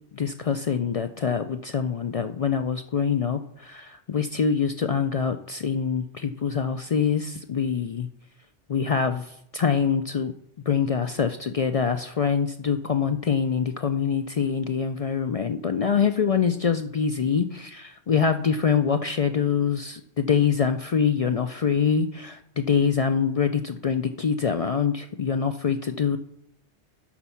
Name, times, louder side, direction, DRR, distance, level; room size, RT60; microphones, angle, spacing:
voice 1, 0.1-8.1 8.7-9.3 9.5-10.3 10.7-26.2, left 6 dB, 65° left, 8 dB, 0.3 m, -25 dB
12.5 x 4.3 x 5.6 m, 0.76 s
omnidirectional pair, 1.2 m